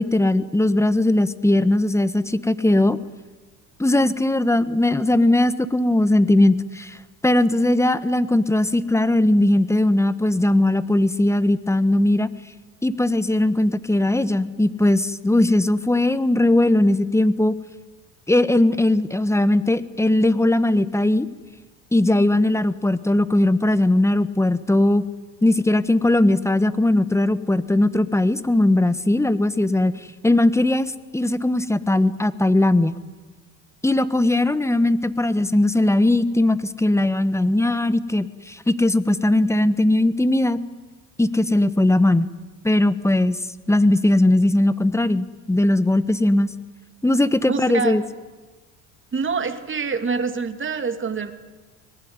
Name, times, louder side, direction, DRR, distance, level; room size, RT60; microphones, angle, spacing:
voice 1, 0.0-3.0 3.8-7.0 7.2-12.3 12.8-17.5 18.3-21.3 21.9-25.0 25.4-29.9 30.2-32.9 33.8-40.6 41.2-42.3 42.6-43.4 43.7-46.5 47.0-48.0, left 1 dB, 5° left, 15 dB, 1.4 m, -19 dB
voice 2, 47.5-48.0 49.1-51.3, right 5 dB, 30° right, 8 dB, 2.8 m, -25 dB
24.0 x 19.5 x 9.8 m, 1.3 s
supercardioid pair, 80°, 38 cm